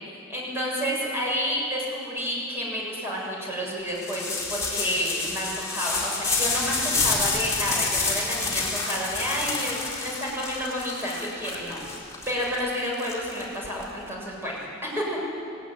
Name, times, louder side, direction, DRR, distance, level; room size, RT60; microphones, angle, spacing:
voice 1, 0.3-11.8 12.3-14.6 14.8-15.2, equal, 10° right, -4 dB, 7.0 m, -30 dB
sound 1, 3.9-13.8, left 3 dB, 15° left, 4.0 m, -28 dB
19.0 x 18.0 x 9.6 m, 2.5 s
head